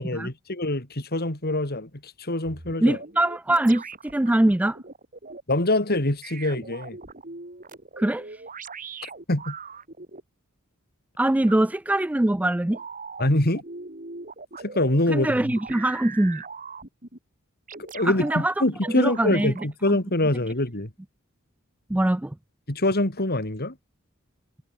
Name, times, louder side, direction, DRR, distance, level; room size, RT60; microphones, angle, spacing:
voice 1, 0.0-3.0 5.5-7.0 9.0-9.6 13.2-13.6 14.6-15.5 17.9-18.3 18.6-20.9 22.7-23.8, left 1 dB, 50° left, 3.6 m, -25 dB
sound 1, 2.4-5.4 6.2-10.2 11.5-11.7 12.7-15.0 15.5-17.2 17.7-18.4 18.8-19.7, right 4 dB, 40° right, 5.4 m, -40 dB
voice 2, 2.8-4.8 8.0-8.3 11.2-12.8 15.1-16.4 18.1-18.6 19.0-19.5 21.9-22.3, right 1 dB, 5° right, 0.3 m, -23 dB
head